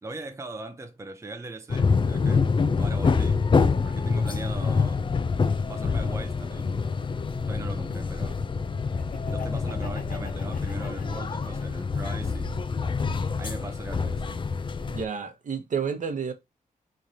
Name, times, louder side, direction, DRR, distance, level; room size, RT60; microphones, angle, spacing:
voice 1, 0.0-2.5 2.8-3.4 3.8-5.0 5.7-6.7 7.5-8.4 9.3-12.6 13.4-14.2, right 2 dB, 20° right, 0.6 m, -39 dB
sound 1, 1.7-15.0, left 5 dB, 35° left, 0.4 m, -26 dB
Laughter, 8.9-12.0 12.4-13.6, left 5 dB, 75° left, 1.1 m, -46 dB
voice 2, 14.9-16.3, right 6 dB, 60° right, 1.0 m, -30 dB
3.8 x 3.2 x 2.7 m
wide cardioid pair, 90°, 15 cm